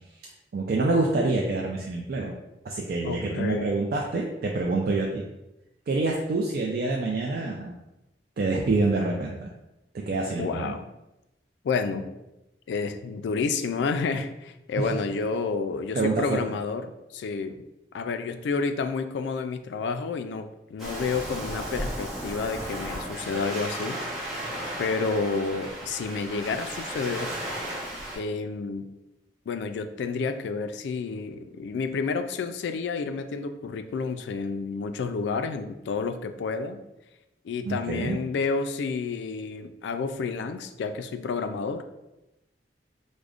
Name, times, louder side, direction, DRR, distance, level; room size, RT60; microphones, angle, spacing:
voice 1, 0.5-2.3 2.6-5.2 5.9-7.7 8.4-9.5 9.9-10.7 14.8-14.9 15.9-16.4 37.6-38.2, right 3 dB, 55° right, -2 dB, 0.4 m, -26 dB
voice 2, 3.0-3.7 10.4-10.9 11.6-12.1 12.7-17.6 17.9-24.0 24.8-27.3 28.2-28.9 29.5-36.8 37.4-41.8, left 4 dB, 80° left, 8 dB, 0.3 m, -30 dB
Waves surf, 20.8-28.2, right 1 dB, ahead, 1.0 m, -35 dB
4.9 x 2.1 x 2.4 m, 0.93 s
head